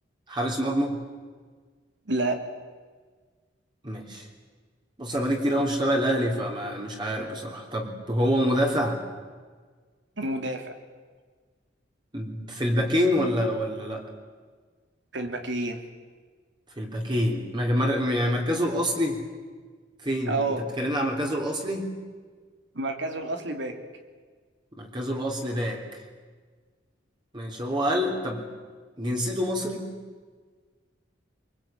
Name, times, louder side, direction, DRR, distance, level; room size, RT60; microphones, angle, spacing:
voice 1, 0.3-1.0 3.8-4.2 5.0-9.0 12.1-14.0 16.8-19.2 20.0-20.4 20.8-21.9 24.8-25.8 27.3-28.4 29.0-29.8, equal, 25° right, 0 dB, 3.4 m, -26 dB
voice 2, 2.1-2.4 10.2-10.7 15.1-15.8 20.3-20.7 22.7-23.8, right 2 dB, 75° right, 6 dB, 2.9 m, -29 dB
23.5 x 23.5 x 9.0 m, 1.5 s
head